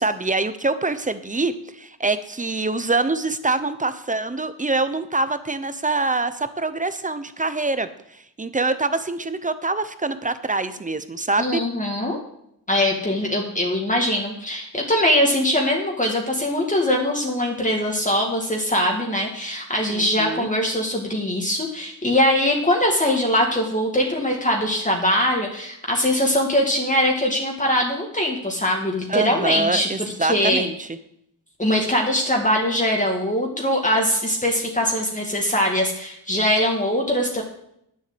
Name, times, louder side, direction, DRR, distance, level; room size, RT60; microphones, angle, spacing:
voice 1, 0.0-7.9 8.4-11.6 19.9-20.5 29.1-30.9, right 3 dB, 20° right, 12 dB, 0.9 m, -25 dB
voice 2, 11.4-12.2 12.7-30.6 31.6-37.4, left 1 dB, 20° left, -1 dB, 2.0 m, -22 dB
10.5 x 7.3 x 7.9 m, 0.74 s
wide cardioid pair, 110°, 41 cm